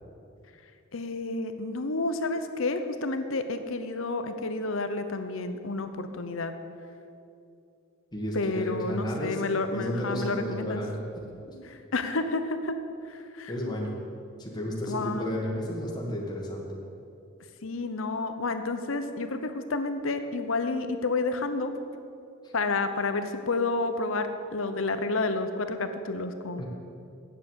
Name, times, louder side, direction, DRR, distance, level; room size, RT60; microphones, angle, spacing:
voice 1, 0.9-6.5 8.3-10.8 11.6-12.7 13.1-13.5 14.8-15.4 17.6-21.7 22.5-26.6, left 3 dB, 70° left, 9 dB, 0.8 m, -30 dB
voice 2, 8.1-9.4 9.7-11.0 13.5-13.9 14.4-16.7 26.6-26.7, equal, 20° left, -3 dB, 1.6 m, -32 dB
9.1 x 7.5 x 8.0 m, 2.6 s
head